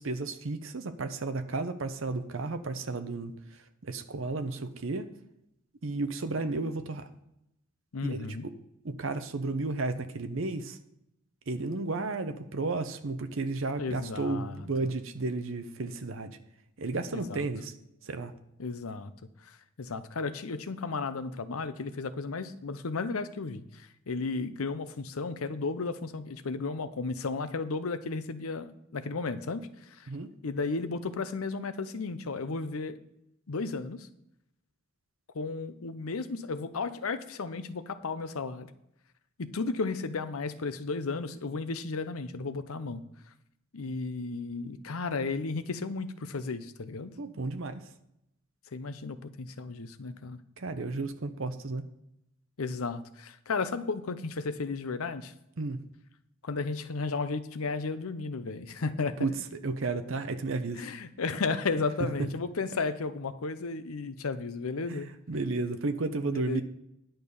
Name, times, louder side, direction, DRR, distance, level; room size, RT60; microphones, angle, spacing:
voice 1, 0.0-3.4 3.8-5.1 5.8-7.1 8.0-8.5 8.8-10.8 11.5-16.4 16.8-17.7 18.0-18.3 30.1-30.3 47.2-47.8 50.6-51.8 55.6-55.8 59.2-60.9 64.9-66.6, right 3 dB, 65° right, 9 dB, 0.7 m, -33 dB
voice 2, 7.9-8.4 13.8-14.9 17.1-17.4 18.6-19.1 19.5-29.7 30.0-30.1 30.4-33.0 33.5-34.1 35.3-38.7 39.4-43.0 43.7-47.1 48.7-50.4 52.6-55.3 56.4-59.3 60.8-65.1 66.3-66.6, left 4 dB, 80° left, 12 dB, 0.7 m, -34 dB
10.5 x 6.6 x 5.4 m, 0.83 s
head